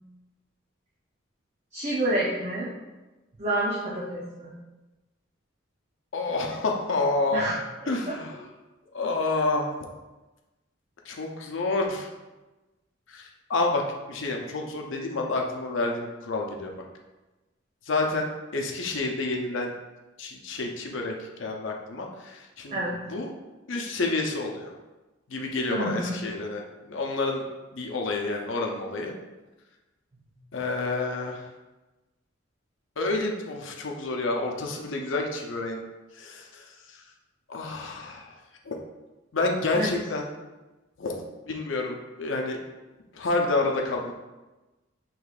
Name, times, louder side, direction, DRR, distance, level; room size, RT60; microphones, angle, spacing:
voice 1, 1.7-2.7 3.4-4.5 7.3-7.6 7.8-8.2 22.7-23.0 25.7-26.2 39.7-39.9, right 1 dB, 35° right, -5 dB, 0.6 m, -28 dB
voice 2, 6.1-7.5 7.9-8.4 8.9-9.7 11.1-12.1 13.1-13.8 14.1-16.7 17.9-19.7 20.2-22.8 23.1-23.3 23.7-24.7 25.3-27.4 27.7-29.1 30.5-31.5 33.0-35.8 36.1-37.0 37.5-38.3 38.7-38.8 39.3-40.3 41.0-42.6 43.1-44.1, left 3 dB, 70° left, 1 dB, 0.6 m, -29 dB
6.3 x 3.0 x 2.4 m, 1.1 s
head